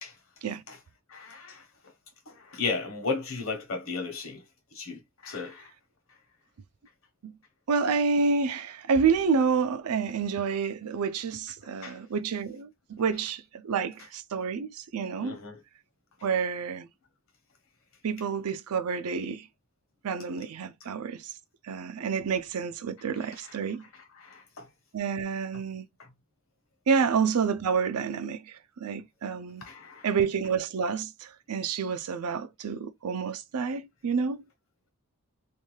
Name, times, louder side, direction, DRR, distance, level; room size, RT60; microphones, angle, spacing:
voice 1, 1.1-1.6 2.3-4.4 4.7-5.7 11.6-12.0 15.2-15.6 24.2-24.7 29.6-30.1, left 4 dB, 65° left, 1.0 m, -35 dB
voice 2, 7.7-15.4 16.2-16.9 18.0-19.5 20.0-21.3 21.6-23.8 24.9-25.8 26.9-29.6 30.0-34.4, right 5 dB, 85° right, 0.5 m, -29 dB
2.6 x 2.3 x 3.1 m
head